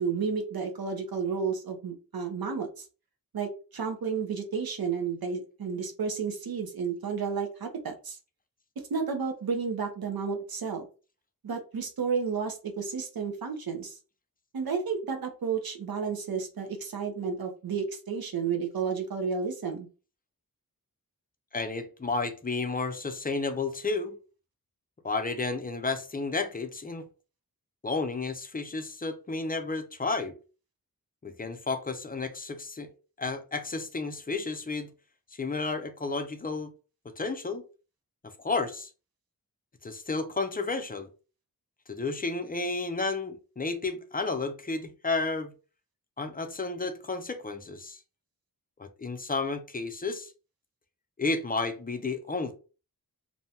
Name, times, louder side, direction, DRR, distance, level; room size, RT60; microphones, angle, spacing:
voice 1, 0.0-2.8 3.3-8.2 8.9-10.9 11.4-14.0 14.5-19.9, right 5 dB, 80° right, 0.7 m, -32 dB
voice 2, 21.5-24.2 25.0-27.1 27.8-30.3 31.2-32.9 33.2-34.9 35.3-36.7 37.2-37.6 38.2-38.9 39.8-41.1 41.9-45.5 46.2-48.0 48.8-50.3 51.2-52.5, left 3 dB, 25° left, 0.4 m, -32 dB
2.6 x 2.2 x 2.8 m
wide cardioid pair, 75°, 36 cm